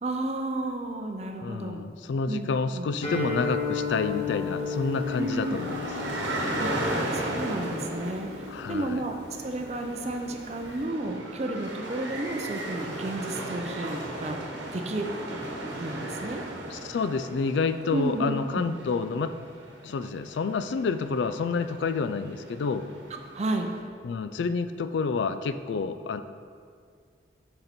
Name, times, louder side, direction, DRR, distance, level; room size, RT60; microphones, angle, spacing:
voice 1, 0.0-1.8 2.3-2.5 2.7-2.9 5.2-5.6 6.6-8.3 8.7-14.4 14.7-15.1 15.7-16.4 17.9-18.6 23.1-23.7, right 2 dB, 35° right, 4 dB, 0.6 m, -32 dB
voice 2, 1.4-5.9 8.5-9.0 16.7-19.3 19.8-22.9 24.0-26.2, left 4 dB, 80° left, 11 dB, 0.3 m, -29 dB
Guitar, 3.0-10.8, left 5 dB, 40° left, 1.8 m, -35 dB
sound 1, 3.9-23.8, right 1 dB, 85° right, 1.1 m, -36 dB
6.5 x 5.8 x 4.3 m, 2.1 s
head